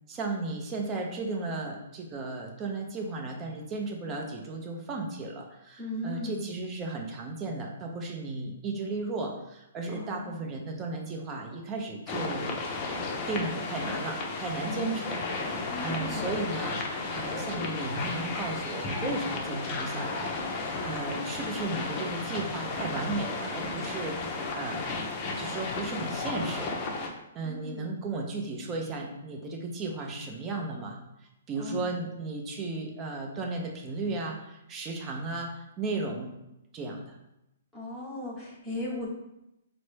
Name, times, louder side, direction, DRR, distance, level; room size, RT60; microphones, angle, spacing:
voice 1, 0.1-12.6 13.3-24.8 25.4-26.8 27.3-31.0 31.5-36.3 36.7-37.2, right 3 dB, 25° right, 1 dB, 0.6 m, -35 dB
voice 2, 5.8-6.5 9.9-10.4 14.6-15.0 15.7-16.3 27.4-27.9 31.6-32.0 37.7-39.1, left 1 dB, ahead, -8 dB, 1.1 m, -37 dB
sound 1, 12.1-27.1, left 3 dB, 30° left, 0.6 m, -34 dB
4.1 x 2.0 x 3.2 m, 0.87 s
hypercardioid pair, 140°, 0 cm